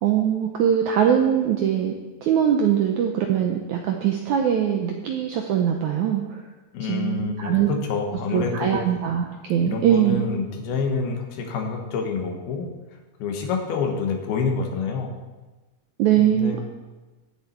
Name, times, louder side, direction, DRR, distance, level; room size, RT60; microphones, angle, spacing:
voice 1, 0.0-1.9 2.2-6.4 6.9-7.7 8.3-10.3 16.0-16.6, right 9 dB, 85° right, 3 dB, 1.7 m, -22 dB
voice 2, 6.7-8.8 9.6-12.7 13.2-15.1 16.2-16.6, left 5 dB, 85° left, 2 dB, 3.3 m, -27 dB
15.5 x 7.0 x 4.5 m, 1.2 s
omnidirectional pair, 4.4 m